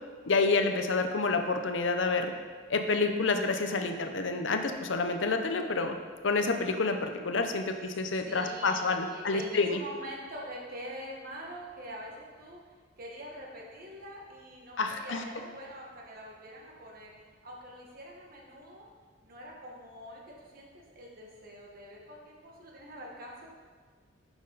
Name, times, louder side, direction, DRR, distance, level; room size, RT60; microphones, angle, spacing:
voice 1, 0.3-2.3 2.7-6.0 6.2-9.8 14.8-15.2, left 3 dB, 80° left, 6 dB, 0.7 m, -28 dB
voice 2, 8.2-12.6 13.0-17.1 17.4-18.9 19.2-23.5, equal, 50° right, -2 dB, 1.6 m, -45 dB
10.5 x 6.3 x 4.0 m, 1.5 s
head